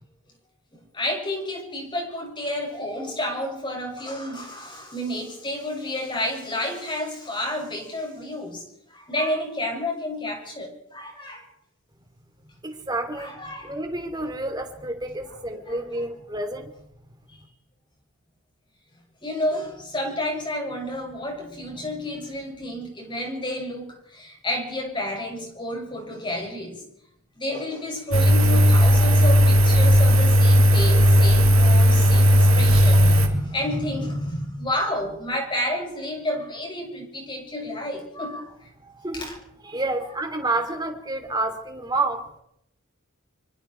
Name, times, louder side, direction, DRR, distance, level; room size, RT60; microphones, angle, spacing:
voice 1, 0.7-8.6 8.9-11.4 13.1-13.7 15.6-15.8 19.2-26.8 27.4-38.7 39.1-39.4, left 1 dB, 20° left, 1 dB, 6.9 m, -30 dB
voice 2, 12.6-16.7 38.8-39.3 39.6-42.3, right 2 dB, 20° right, 5 dB, 3.2 m, -29 dB
Engine, 28.1-33.3, equal, 65° right, 4.0 m, -15 dB
25.5 x 25.0 x 4.7 m, 0.77 s
head